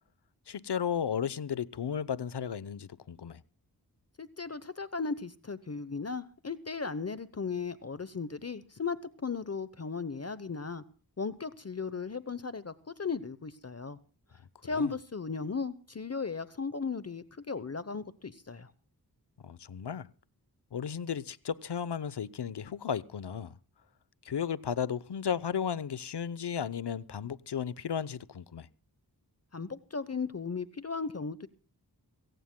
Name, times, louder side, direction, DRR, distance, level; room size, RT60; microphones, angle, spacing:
voice 1, 0.5-3.4 14.7-14.9 19.4-20.1 20.7-23.5 24.2-28.7, left 8 dB, 80° left, 0.8 m, -34 dB
voice 2, 4.2-10.8 11.2-14.0 14.6-18.7 29.5-31.5, left 4 dB, 40° left, 0.9 m, -36 dB
24.5 x 17.0 x 2.2 m
wide cardioid pair, 60°, 40 cm